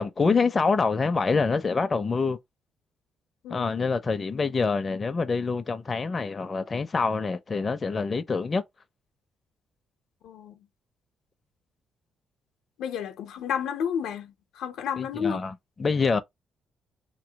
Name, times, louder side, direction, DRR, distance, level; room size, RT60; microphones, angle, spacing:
voice 1, 0.0-2.4 3.5-8.6 15.0-16.2, left 4 dB, 30° left, 0.5 m, -26 dB
voice 2, 3.4-3.9 10.2-10.6 12.8-15.4, left 8 dB, 85° left, 0.7 m, -31 dB
3.0 x 2.9 x 2.9 m
cardioid pair, 90°, 0 cm